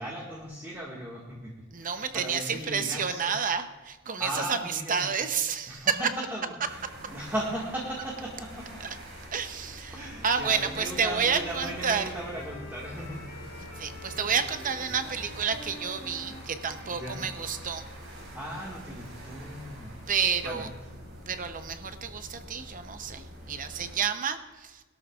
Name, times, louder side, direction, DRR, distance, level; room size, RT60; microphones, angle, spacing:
voice 1, 0.0-3.4 4.2-5.1 5.7-8.6 9.9-13.3 16.8-17.3 18.3-20.0 20.4-20.8, right 1 dB, 10° right, -5 dB, 1.8 m, -37 dB
voice 2, 1.7-6.0 8.8-9.0 9.3-12.1 13.8-17.8 20.1-20.7 21.3-24.8, right 6 dB, 40° right, 9 dB, 0.7 m, -30 dB
sound 1, 6.6-24.0, equal, 70° right, 3.9 m, -45 dB
Wind instrument woodwind instrument, 10.1-18.0, left 1 dB, 40° left, 2.8 m, -47 dB
21.0 x 12.5 x 2.4 m, 1.2 s
head